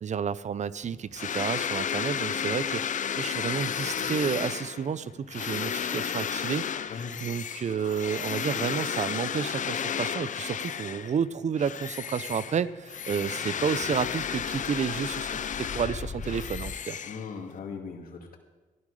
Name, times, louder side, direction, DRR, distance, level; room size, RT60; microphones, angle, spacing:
voice 1, 0.0-17.0, right 7 dB, 55° right, 16 dB, 0.6 m, -31 dB
sound 1, 0.8-7.6 7.9-16.8, left 5 dB, 45° left, 1.0 m, -47 dB
sound 2, 1.2-11.2 11.6-17.6, left 8 dB, 60° left, 0.6 m, -33 dB
voice 2, 17.0-18.4, left 5 dB, 80° left, 1 dB, 2.4 m, -39 dB
15.5 x 12.0 x 4.9 m, 1.2 s
cardioid pair, 85°, 15 cm